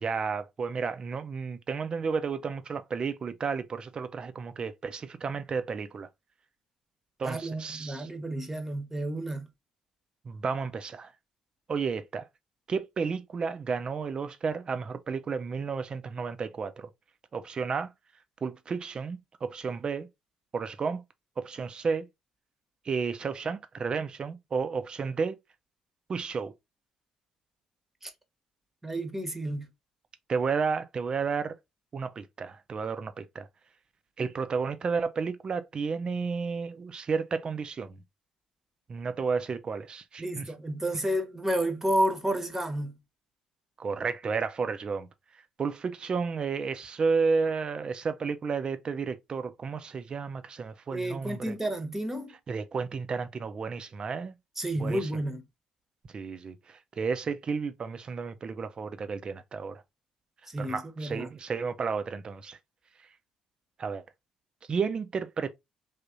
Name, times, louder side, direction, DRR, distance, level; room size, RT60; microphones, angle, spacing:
voice 1, 0.0-6.1 7.2-8.1 10.2-11.1 11.7-12.2 12.7-16.9 17.3-17.9 18.4-20.1 20.5-21.0 21.4-22.1 22.8-25.4 26.1-26.5 30.3-31.6 31.9-33.5 34.2-38.0 38.9-40.5 43.8-45.1 45.6-51.5 52.5-54.3 54.8-55.1 56.1-59.8 60.6-62.6 63.8-64.0 64.7-65.5, right 5 dB, 35° right, 0.5 m, -32 dB
voice 2, 7.2-9.5 28.0-28.1 28.8-29.7 40.2-43.0 50.9-52.3 54.6-55.4 60.5-61.3, right 1 dB, 15° right, 0.9 m, -31 dB
3.5 x 2.8 x 2.6 m
figure-of-eight pair, 45°, 3 cm